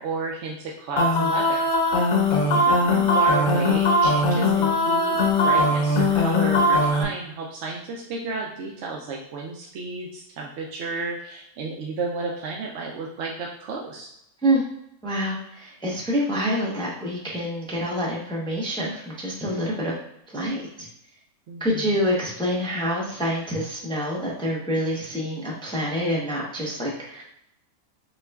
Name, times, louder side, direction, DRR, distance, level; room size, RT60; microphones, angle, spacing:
voice 1, 0.0-1.7 1.9-2.2 2.4-5.2 5.4-14.1 21.5-21.9, right 3 dB, 65° right, -1 dB, 0.8 m, -32 dB
sound 1, 1.0-7.0, left 1 dB, 75° left, 1.0 m, -20 dB
voice 2, 15.0-19.9 20.3-20.7 21.6-27.2, equal, 5° left, -3 dB, 0.4 m, -26 dB
6.5 x 2.3 x 2.2 m, 0.77 s
omnidirectional pair, 1.5 m